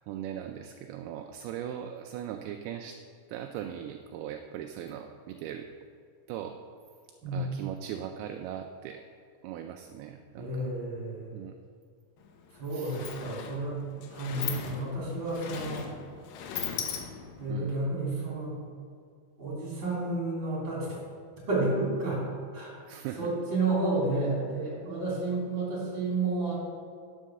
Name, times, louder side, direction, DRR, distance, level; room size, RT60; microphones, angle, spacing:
voice 1, 0.1-3.0 3.3-5.7 6.3-6.6 7.3-9.0 9.4-10.6 11.3-11.5 12.7-12.9 17.5-17.8 22.9-23.2, right 10 dB, 80° right, 6 dB, 2.4 m, -39 dB
voice 2, 7.2-7.5 10.3-11.3 12.5-13.8 14.1-15.9 17.4-18.6 19.4-21.1 21.5-22.2 22.5-22.8 23.1-26.6, right 2 dB, 30° right, -5 dB, 3.6 m, -31 dB
Sliding door, 12.2-12.3 12.6-17.5, left 7 dB, 75° left, 2.3 m, -38 dB
11.5 x 6.4 x 6.5 m, 2.3 s
omnidirectional pair, 4.6 m